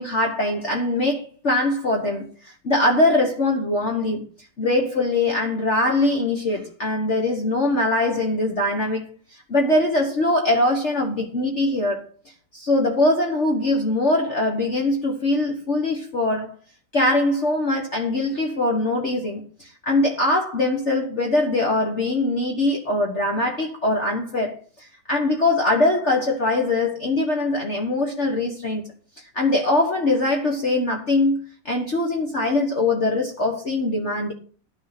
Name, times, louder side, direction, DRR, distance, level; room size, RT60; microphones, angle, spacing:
voice 1, 0.0-4.2 4.6-9.1 9.5-12.1 12.5-16.5 16.9-28.8 29.3-34.3, left 2 dB, 40° left, 1.6 m, -22 dB
11.5 x 6.8 x 5.9 m
omnidirectional pair, 2.0 m